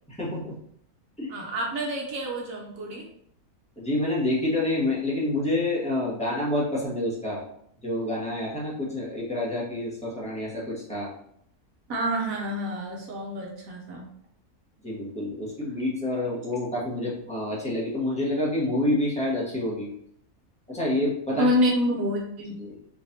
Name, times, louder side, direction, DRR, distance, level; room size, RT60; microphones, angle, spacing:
voice 1, 0.1-0.5 1.2-1.3 3.8-7.4 7.8-11.1 14.8-19.9 20.7-21.5 22.6-22.8, left 1 dB, 5° left, -7 dB, 1.2 m, -28 dB
voice 2, 1.3-3.0 11.9-14.1 21.3-22.5, equal, 65° right, -1 dB, 1.2 m, -27 dB
3.9 x 3.3 x 2.7 m, 0.69 s
omnidirectional pair, 1.6 m